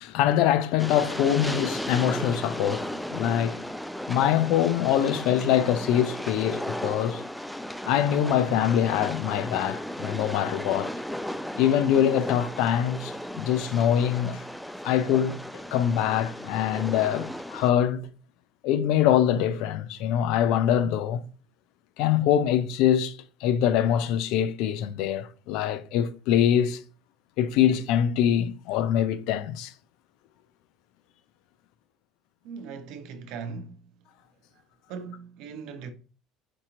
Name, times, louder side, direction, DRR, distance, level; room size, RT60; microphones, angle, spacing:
voice 1, 0.0-3.6 4.1-7.2 7.8-10.9 11.6-14.4 14.8-15.4 15.7-18.1 18.6-21.2 22.0-26.8 27.4-29.7, left 10 dB, 70° left, 0.4 m, -24 dB
Train, 0.8-17.7, equal, 5° left, 0.4 m, -35 dB
voice 2, 32.4-33.8 34.9-35.9, right 5 dB, 70° right, 0.8 m, -39 dB
4.6 x 2.9 x 3.7 m
supercardioid pair, 80°, 0 cm